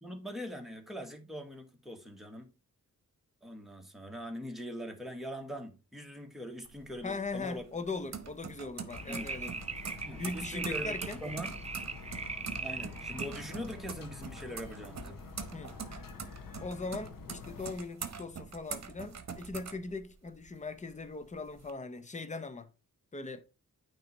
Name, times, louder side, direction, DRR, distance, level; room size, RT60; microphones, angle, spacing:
voice 1, 0.0-2.5 3.4-7.6 9.1-9.3 10.0-11.5 12.6-15.2, equal, ahead, 1.3 m, -42 dB
sound 1, 6.7-20.5 20.9-21.7, right 6 dB, 55° right, 1.0 m, -44 dB
voice 2, 7.0-9.6 10.2-11.2 15.5-15.8 16.6-22.7 23.1-23.4, left 3 dB, 20° left, 0.7 m, -40 dB
sound 2, 8.9-17.7, left 4 dB, 85° left, 0.9 m, -47 dB
sound 3, 8.9-13.3 13.9-14.0, right 4 dB, 20° right, 0.6 m, -40 dB
9.0 x 3.1 x 4.4 m
wide cardioid pair, 85°, 33 cm